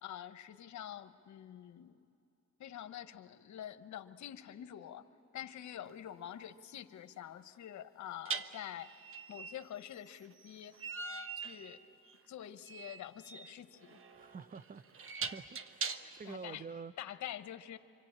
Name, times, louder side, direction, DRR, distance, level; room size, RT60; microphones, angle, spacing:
voice 1, 0.0-2.0 2.6-5.1 5.3-8.9 9.3-10.8 11.4-11.8 12.3-14.0 16.0-16.6 17.0-17.8, left 11 dB, 70° left, 1.1 m, -47 dB
sound 1, 5.9-6.0 8.3-16.3, right 5 dB, 45° right, 1.1 m, -43 dB
voice 2, 14.1-16.9, right 5 dB, 30° right, 0.6 m, -48 dB
26.0 x 25.5 x 8.7 m
cardioid pair, 90°, 30 cm